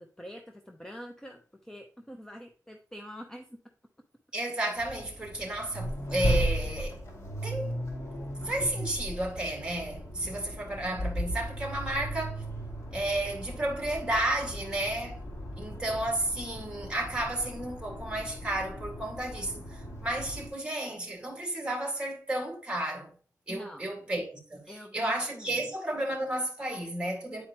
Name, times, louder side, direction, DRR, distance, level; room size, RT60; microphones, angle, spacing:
voice 1, 0.0-3.6 23.5-24.1 24.7-25.6, equal, 10° left, 0.7 m, -46 dB
voice 2, 4.3-7.0 7.4-7.8 8.4-12.4 12.9-15.2 15.6-23.1 23.5-24.6 24.9-27.5, right 1 dB, 15° right, 2.2 m, -32 dB
Accelerating revving vroom, 4.8-20.5, equal, 50° left, 2.2 m, -36 dB
9.5 x 4.6 x 3.0 m
wide cardioid pair, 120°, 6 cm